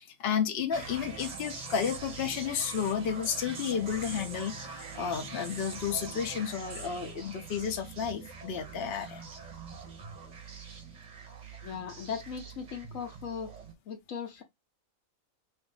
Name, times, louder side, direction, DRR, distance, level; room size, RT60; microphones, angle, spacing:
voice 1, 0.0-9.2, left 7 dB, 55° left, 0.9 m, -32 dB
sound 1, 0.7-13.7, right 4 dB, 40° right, 0.7 m, -43 dB
voice 2, 11.6-13.5 13.9-14.4, left 7 dB, 70° left, 1.2 m, -38 dB
2.7 x 2.6 x 3.7 m
omnidirectional pair, 1.4 m